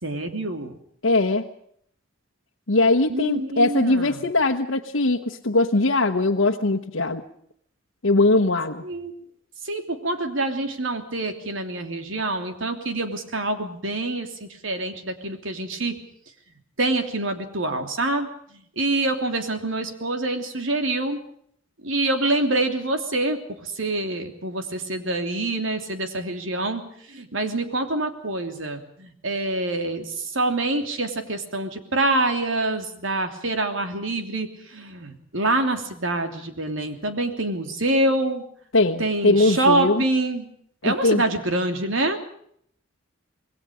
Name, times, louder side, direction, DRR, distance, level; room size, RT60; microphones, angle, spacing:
voice 1, 0.0-0.7 3.1-4.2 8.8-9.1 9.6-16.0 16.8-18.3 18.8-21.2 21.8-26.8 27.1-38.4 39.0-40.4 40.8-42.2, right 2 dB, 80° right, 6 dB, 3.1 m, -26 dB
voice 2, 1.0-1.5 2.7-7.2 8.0-8.8 38.7-40.0 40.8-41.2, left 2 dB, 85° left, 1 dB, 1.2 m, -20 dB
26.5 x 21.0 x 5.1 m, 0.66 s
head